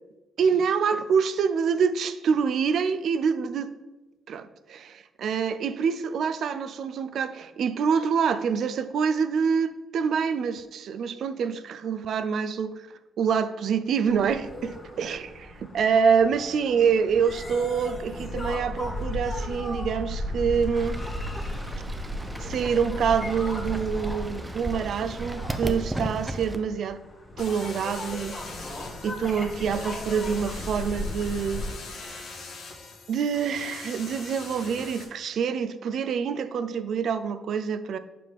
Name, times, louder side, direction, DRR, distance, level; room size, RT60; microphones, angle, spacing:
voice 1, 0.4-3.7 4.3-12.9 13.2-21.0 22.4-27.0 27.4-28.3 29.0-31.6 31.9-32.2 33.1-38.0, right 6 dB, 65° right, 12 dB, 0.4 m, -26 dB
sound 1, 14.0-31.7, left 1 dB, 25° left, 1.6 m, -36 dB
Fowl / Bird, 20.7-26.6, right 1 dB, 15° right, 0.6 m, -35 dB
sound 2, 27.4-35.0, left 3 dB, 75° left, 1.4 m, -42 dB
6.7 x 5.1 x 3.5 m, 1.1 s
cardioid pair, 90°, 0 cm